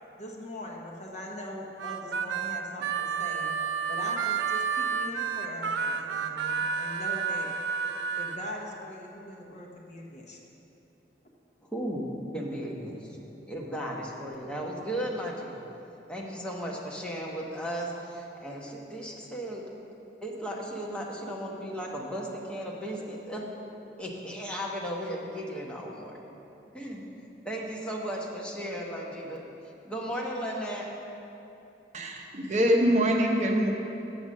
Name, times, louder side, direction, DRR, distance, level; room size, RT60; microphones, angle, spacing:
voice 1, 0.2-3.5 3.9-7.5 8.2-10.4, left 1 dB, 40° left, 0 dB, 1.0 m, -41 dB
Harmonica, 1.8-8.4, right 6 dB, 90° right, 0.4 m, -30 dB
voice 2, 11.7-12.0 12.3-15.6 16.1-19.6 20.2-23.5 24.0-26.2 26.7-27.1 27.4-29.4 29.8-30.9, equal, 5° left, -3 dB, 1.0 m, -35 dB
voice 3, 31.9-33.7, equal, 40° right, 1 dB, 0.8 m, -24 dB
7.1 x 6.9 x 6.3 m, 2.9 s
head